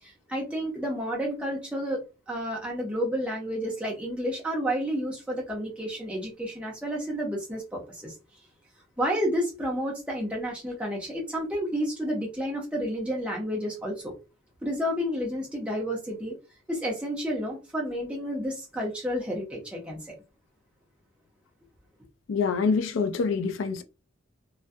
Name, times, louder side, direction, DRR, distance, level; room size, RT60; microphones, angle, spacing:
voice 1, 0.0-2.0 2.3-8.1 9.0-14.1 14.6-16.3 16.7-20.2, equal, 5° right, 0.6 m, -30 dB
voice 2, 22.3-23.8, left 5 dB, 70° left, 0.3 m, -26 dB
2.2 x 2.1 x 2.6 m
head